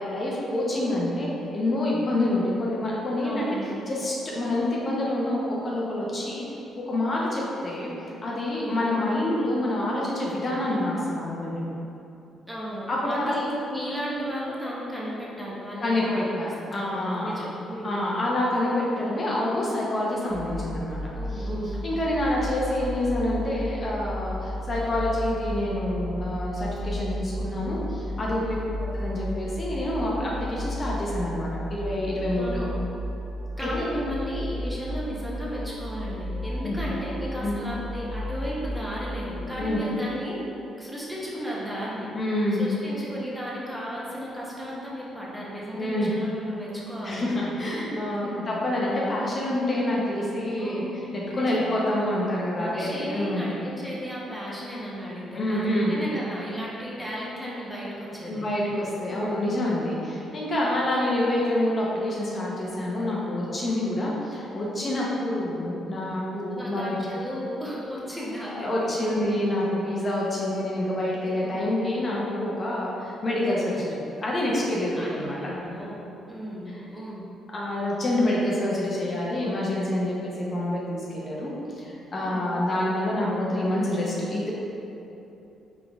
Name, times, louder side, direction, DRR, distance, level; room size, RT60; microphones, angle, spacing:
voice 1, 0.0-3.5 3.8-6.5 6.9-7.9 8.2-11.5 12.9-13.3 15.8-17.3 17.8-21.0 21.3-21.4 21.8-28.4 28.9-32.6 36.6-36.8 37.4-37.5 39.6-39.8 42.1-42.7 45.8-46.1 47.0-50.8 51.1-53.4 55.3-56.0 58.3-67.0 68.4-75.4 77.5-84.5, left 1 dB, 40° left, -5 dB, 0.8 m, -27 dB
voice 2, 3.2-3.7 8.5-8.8 12.5-18.1 21.1-21.7 28.4-28.7 32.3-32.7 33.6-40.4 40.8-42.1 42.6-47.3 48.2-48.5 50.6-50.9 51.3-51.6 52.5-58.5 59.1-59.4 63.7-64.0 66.5-69.3 71.4-71.7 74.9-76.0 76.3-77.2 82.2-82.5, equal, 5° right, -6 dB, 1.0 m, -34 dB
sound 1, 20.3-39.8, equal, 60° right, 1.3 m, -34 dB
4.0 x 3.6 x 3.5 m, 3.0 s
cardioid pair, 90°, 0 cm